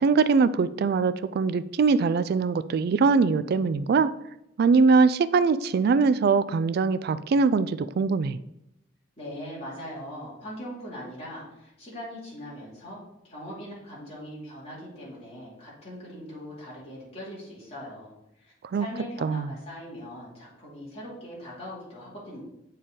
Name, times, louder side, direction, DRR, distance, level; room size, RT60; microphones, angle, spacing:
voice 1, 0.0-4.1 4.6-8.4 18.7-18.9 19.2-19.5, right 4 dB, 55° right, 15 dB, 0.3 m, -22 dB
voice 2, 9.2-13.0 13.2-22.4, equal, 35° left, -7 dB, 2.6 m, -41 dB
7.6 x 4.1 x 3.9 m, 0.85 s
head